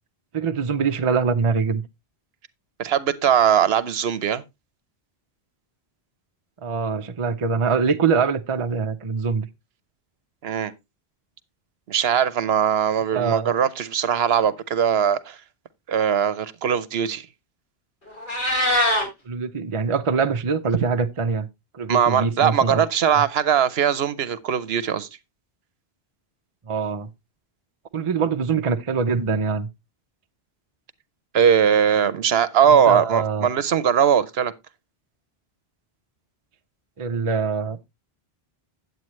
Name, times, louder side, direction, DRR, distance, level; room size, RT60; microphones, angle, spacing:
voice 1, 0.3-1.8 6.6-9.5 13.1-13.5 19.3-21.5 21.7-22.8 23.1-23.2 26.7-27.1 27.9-29.7 32.7-33.5 37.0-37.8, right 5 dB, 35° right, 0.6 m, -24 dB
voice 2, 2.8-4.4 10.4-10.7 11.9-15.4 15.9-17.3 21.9-25.1 31.3-34.5, right 8 dB, 75° right, 1.0 m, -20 dB
Meow, 18.1-19.1, left 1 dB, 50° left, 3.8 m, -21 dB
9.2 x 8.2 x 3.1 m
omnidirectional pair, 1.0 m